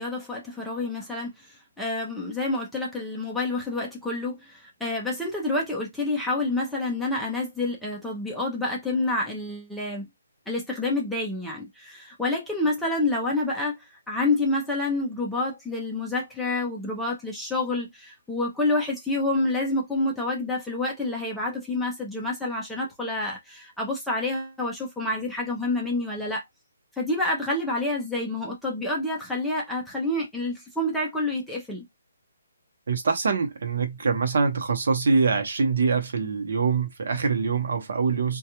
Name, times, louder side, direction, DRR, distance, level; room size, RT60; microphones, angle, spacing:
voice 1, 0.0-10.1 10.5-26.4 27.0-31.8, left 2 dB, ahead, 0.5 m, -28 dB
voice 2, 32.9-38.4, right 5 dB, 55° right, 0.8 m, -24 dB
2.3 x 2.2 x 2.9 m
hypercardioid pair, 175°, 0 cm